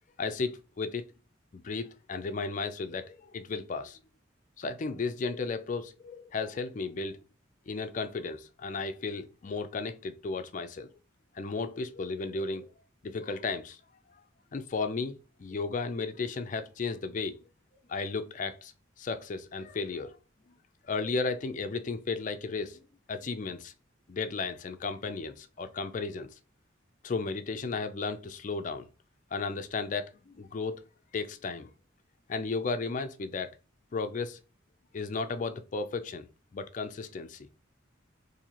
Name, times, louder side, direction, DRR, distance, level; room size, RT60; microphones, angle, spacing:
voice 1, 0.2-1.1 1.5-4.0 4.6-7.2 7.7-10.9 11.3-12.7 13.0-13.8 14.5-17.4 17.9-18.7 19.0-20.2 20.9-22.8 23.1-23.7 24.1-26.3 27.0-28.9 29.3-30.8 31.1-31.7 32.3-33.5 33.9-34.4 34.9-36.3 36.5-37.5, left 4 dB, 40° left, 0.4 m, -34 dB
4.1 x 2.7 x 2.9 m
head